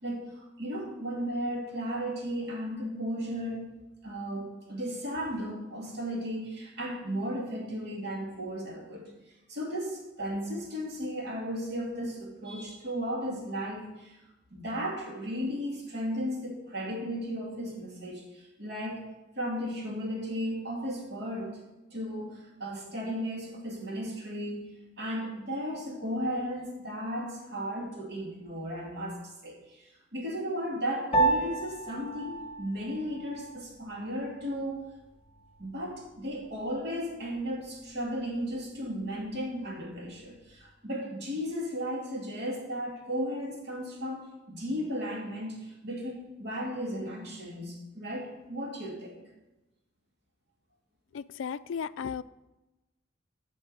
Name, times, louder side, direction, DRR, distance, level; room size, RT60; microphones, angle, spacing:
voice 1, 0.0-3.7 4.0-9.1 9.5-14.2 14.5-19.1 19.4-21.6 21.9-24.7 25.0-34.8 35.6-49.2, equal, 60° right, 0 dB, 2.5 m, -35 dB
Piano, 31.1-40.7, right 3 dB, 35° left, 0.8 m, -35 dB
voice 2, 51.1-52.2, left 7 dB, 85° left, 17 dB, 0.3 m, -35 dB
9.6 x 5.4 x 7.9 m, 1.0 s
head